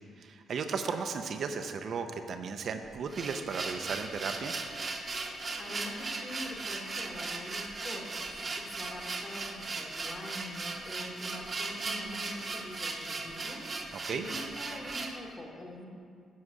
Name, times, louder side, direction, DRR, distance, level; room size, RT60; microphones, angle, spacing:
voice 1, 0.2-4.5 13.9-14.3, right 5 dB, 60° right, 6 dB, 0.6 m, -35 dB
sound 1, 2.9-15.2, right 3 dB, 35° right, 0.9 m, -38 dB
voice 2, 5.6-13.7 14.1-15.9, left 1 dB, 25° left, 0 dB, 1.6 m, -44 dB
9.8 x 4.8 x 6.4 m, 2.3 s
cardioid pair, 90°, 0 cm